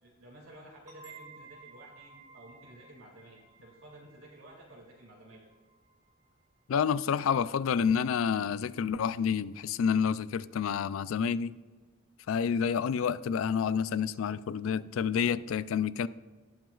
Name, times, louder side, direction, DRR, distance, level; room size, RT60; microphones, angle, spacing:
voice 1, 0.0-5.4, right 1 dB, 85° right, 2.4 m, -53 dB
sound 1, 0.9-6.3, right 5 dB, 15° right, 1.0 m, -55 dB
voice 2, 6.7-11.5 12.3-16.1, left 7 dB, 65° left, 0.3 m, -29 dB
18.0 x 6.0 x 2.4 m
head